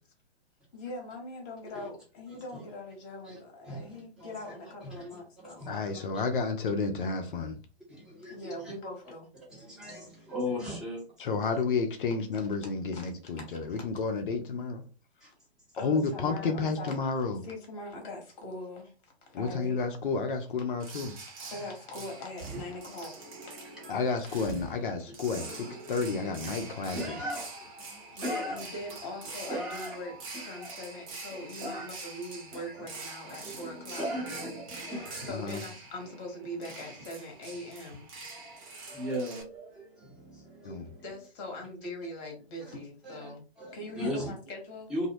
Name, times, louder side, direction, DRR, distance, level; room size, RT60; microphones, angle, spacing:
voice 1, 0.7-5.7 8.3-9.3 12.9-13.0 13.7-13.8 15.7-16.9 17.4-18.9 19.3-19.8 21.5-23.1 28.1-30.1 30.4-34.4 35.3-38.1 41.0-43.4 43.7-44.9, left 1 dB, 30° left, 1.0 m, -41 dB
voice 2, 3.6-4.3 4.9-6.0 7.9-8.4 9.5-11.0 15.2-15.3 23.1-24.1 25.3-28.6 29.5-30.7 31.6-31.9 32.5-32.9 33.3-35.6 38.2-41.0 42.7-42.8 43.0-44.3 44.9-45.1, equal, ahead, 0.8 m, -39 dB
voice 3, 5.7-7.6 11.2-14.8 15.8-17.5 19.3-21.2 23.9-27.2 35.3-35.6 40.6-40.9, left 4 dB, 55° left, 0.5 m, -31 dB
sound 1, 20.8-39.4, right 3 dB, 35° right, 0.6 m, -45 dB
2.7 x 2.0 x 2.7 m
figure-of-eight pair, 115°, 32 cm